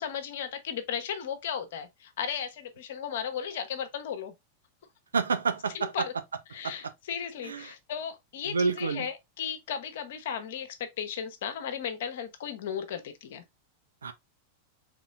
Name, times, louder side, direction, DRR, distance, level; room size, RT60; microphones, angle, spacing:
voice 1, 0.0-4.3 5.7-6.1 6.5-13.4, left 8 dB, 55° left, 1.0 m, -35 dB
voice 2, 5.1-6.0 6.6-6.9 7.4-7.7 8.5-9.1 14.0-14.1, right 5 dB, 70° right, 0.7 m, -29 dB
4.1 x 3.8 x 2.4 m
figure-of-eight pair, 90°, 0 cm